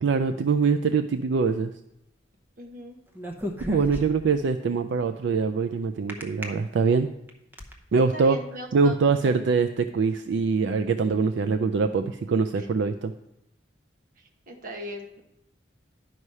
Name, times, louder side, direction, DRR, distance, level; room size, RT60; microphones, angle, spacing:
voice 1, 0.0-1.7 3.7-7.1 7.9-8.4 8.7-13.1, right 5 dB, 70° right, 8 dB, 0.4 m, -23 dB
voice 2, 2.6-3.0 8.1-9.3 12.6-12.7 14.5-15.2, equal, 45° right, 2 dB, 1.2 m, -39 dB
sound 1, 3.1-4.4 6.1-6.4 7.1-7.7, equal, 10° right, 0.8 m, -34 dB
11.0 x 4.8 x 5.5 m, 0.83 s
head